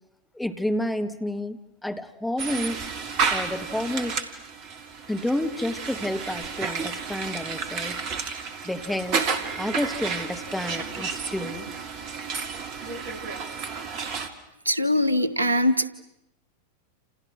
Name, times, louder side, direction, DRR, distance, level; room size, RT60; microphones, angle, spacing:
voice 1, 0.3-2.8 3.3-4.2 5.1-8.0 8.6-9.3 9.6-11.7, left 1 dB, 5° left, 6 dB, 2.2 m, -30 dB
sound 1, 2.4-14.3, right 5 dB, 40° right, 2.8 m, -31 dB
voice 2, 14.6-15.9, left 1 dB, 80° right, 15 dB, 1.5 m, -22 dB
29.5 x 29.0 x 6.3 m, 0.83 s
figure-of-eight pair, 90°, 0 cm